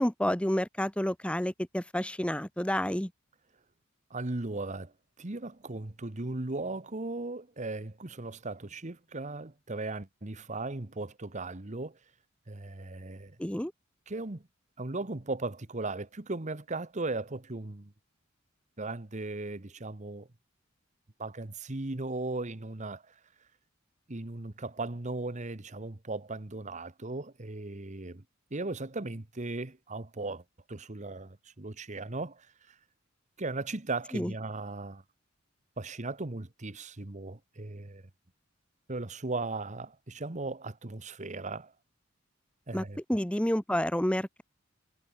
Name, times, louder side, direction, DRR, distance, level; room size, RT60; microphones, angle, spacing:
voice 1, 0.0-3.1 13.4-13.7 34.1-34.3 42.7-44.4, left 1 dB, 5° left, 1.0 m, -29 dB
voice 2, 4.1-4.9 5.2-12.0 12.5-13.4 14.1-14.4 14.8-17.9 18.8-20.3 21.2-23.1 24.1-28.2 28.5-30.4 30.7-32.7 33.4-35.0 35.8-38.0 38.9-41.7 42.7-43.0, right 2 dB, 35° right, 1.2 m, -37 dB
head